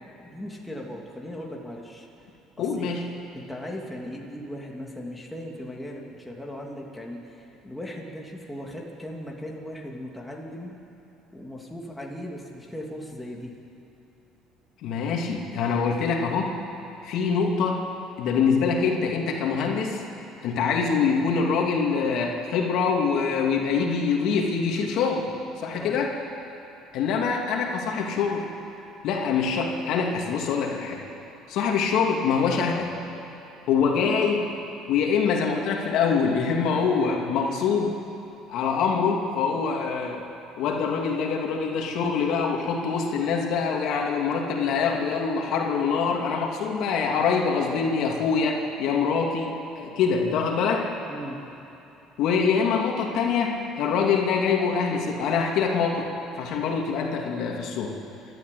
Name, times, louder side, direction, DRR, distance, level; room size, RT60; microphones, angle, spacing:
voice 1, 0.2-2.1 2.6-2.9 3.3-10.7 11.3-13.5 25.7-26.0 51.1-51.4, equal, 5° left, -2 dB, 2.8 m, -38 dB
voice 2, 2.6-3.0 14.8-16.5 17.0-17.8 18.2-20.0 20.4-25.3 25.6-26.1 26.9-28.5 29.0-31.0 31.5-32.9 33.7-34.5 34.9-38.0 38.5-40.2 40.6-50.9 52.2-56.0 56.3-57.9, left 5 dB, 65° left, 0 dB, 2.8 m, -24 dB
29.5 x 12.5 x 8.4 m, 3.0 s
cardioid pair, 125°, 0 cm